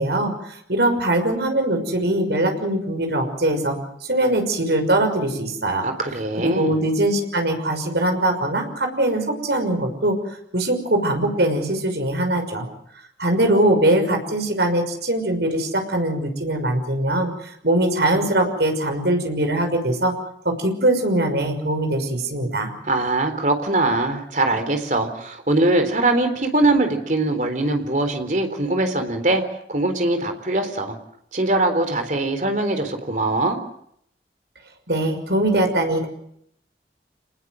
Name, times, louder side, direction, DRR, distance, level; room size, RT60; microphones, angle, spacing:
voice 1, 0.0-3.8 4.1-5.9 6.4-12.7 13.2-20.1 20.4-22.7 34.9-36.1, right 1 dB, 65° right, 5 dB, 6.0 m, -22 dB
voice 2, 5.8-6.8 22.8-29.4 29.7-31.0 31.3-33.6, right 2 dB, 45° right, 6 dB, 4.0 m, -22 dB
27.5 x 20.0 x 7.8 m, 0.70 s
head